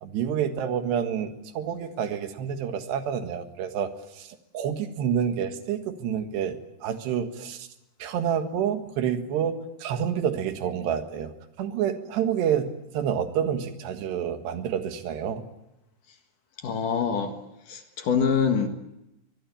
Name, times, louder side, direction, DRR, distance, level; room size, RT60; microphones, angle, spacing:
voice 1, 0.0-7.7 8.0-9.6 9.8-11.3 11.6-12.7 12.9-15.4, right 8 dB, 85° right, 7 dB, 3.8 m, -28 dB
voice 2, 16.6-17.4 17.7-18.7, left 6 dB, 60° left, 6 dB, 2.9 m, -25 dB
24.0 x 21.5 x 8.6 m, 0.91 s
omnidirectional pair, 4.8 m